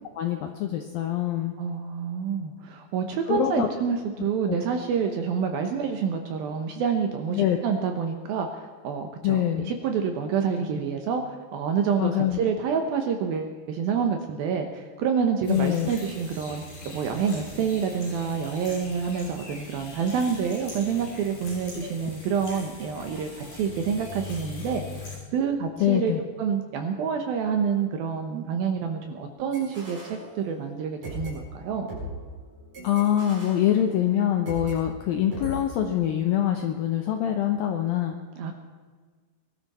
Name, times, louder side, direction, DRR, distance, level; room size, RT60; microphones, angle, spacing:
voice 1, 0.2-1.5 3.3-3.7 4.5-4.6 7.4-7.6 9.2-9.7 12.0-12.4 15.5-15.9 21.8-22.1 25.8-26.2 32.8-38.1, left 11 dB, 80° left, 4 dB, 2.1 m, -24 dB
voice 2, 1.6-11.2 11.5-24.8 25.3-26.1 26.4-31.9 38.4-38.5, right 6 dB, 70° right, 5 dB, 2.4 m, -28 dB
sound 1, 15.4-25.2, left 3 dB, 60° left, 7.4 m, -42 dB
sound 2, 29.5-30.7 31.0-34.8 35.3-35.6, right 1 dB, 45° right, 7.9 m, -39 dB
22.5 x 12.5 x 4.2 m, 1.5 s
omnidirectional pair, 5.2 m